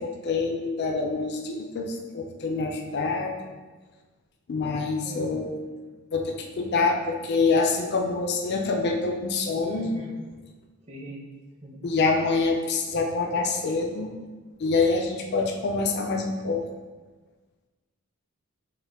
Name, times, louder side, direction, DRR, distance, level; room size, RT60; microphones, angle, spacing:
voice 1, 0.0-3.5 4.5-5.6 6.1-9.9 11.8-14.1 14.6-16.6, left 3 dB, 50° left, 2 dB, 0.4 m, -26 dB
voice 2, 5.0-5.5 9.6-10.1 10.8-11.3 11.6-11.8, equal, 30° right, -1 dB, 0.7 m, -41 dB
6.5 x 2.2 x 3.4 m, 1.3 s
head